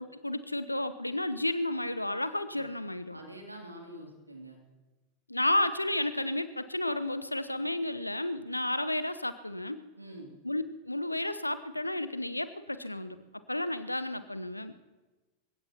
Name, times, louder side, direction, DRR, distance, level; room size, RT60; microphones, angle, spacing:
voice 1, 0.0-3.2 5.3-9.8 10.4-13.2 13.5-14.7, left 1 dB, 85° left, 14 dB, 0.7 m, -32 dB
voice 2, 3.1-4.6 10.0-10.3, right 1 dB, 85° right, 1 dB, 2.6 m, -46 dB
28.5 x 16.5 x 2.9 m, 1.2 s
figure-of-eight pair, 90°, 0 cm